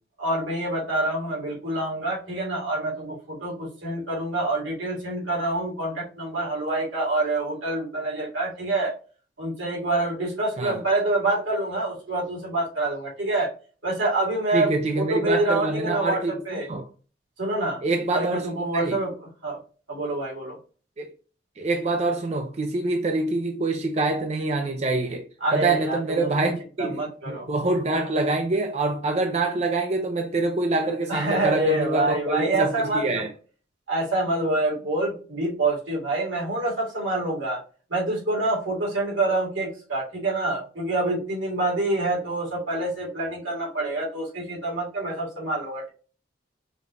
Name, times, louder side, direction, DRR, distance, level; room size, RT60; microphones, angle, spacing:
voice 1, 0.2-8.9 9.4-13.5 13.8-16.7 17.4-17.8 18.1-19.6 19.9-20.6 25.4-26.5 26.8-27.5 31.1-33.3 33.9-37.6 37.9-45.9, right 2 dB, 85° right, 2.1 m, -26 dB
voice 2, 14.5-16.9 17.8-18.5 18.7-19.0 21.0-21.1 21.6-33.3, right 2 dB, 35° right, 0.4 m, -25 dB
5.1 x 2.5 x 2.8 m
head